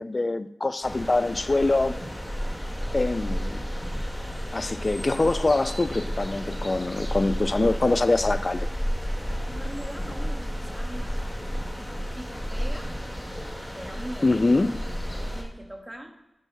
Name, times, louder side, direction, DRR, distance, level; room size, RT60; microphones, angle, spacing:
voice 1, 0.0-2.0 2.9-3.6 4.5-8.7 14.2-14.8, left 2 dB, 40° left, 0.6 m, -24 dB
sound 1, 0.8-15.4, equal, 5° left, 2.2 m, -32 dB
voice 2, 9.5-11.5 12.2-12.9 13.7-14.3 15.2-16.1, right 1 dB, 15° right, 2.0 m, -41 dB
12.0 x 4.8 x 5.8 m
cardioid pair, 60°, 0 cm